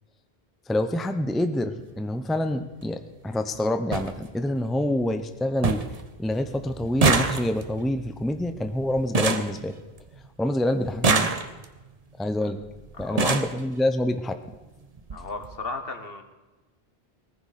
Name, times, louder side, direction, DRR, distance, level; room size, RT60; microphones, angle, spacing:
voice 1, 0.7-5.8 6.2-9.7 10.4-11.3 12.2-12.6 13.0-14.3, left 1 dB, ahead, 8 dB, 0.7 m, -26 dB
sound 1, 1.8-2.0 3.2-3.3 3.5-3.6 3.9-4.1 4.6-5.0 5.3-5.4 5.6-6.0 6.3-10.3 10.8-11.8 12.6-12.7 13.0-13.6 14.5-14.6 15.0-15.2 15.4-15.6, right 4 dB, 40° right, 0.9 m, -26 dB
voice 2, 12.9-13.4 15.1-16.2, left 3 dB, 65° left, 7 dB, 1.6 m, -35 dB
18.5 x 15.0 x 4.2 m, 1.2 s
omnidirectional pair, 1.0 m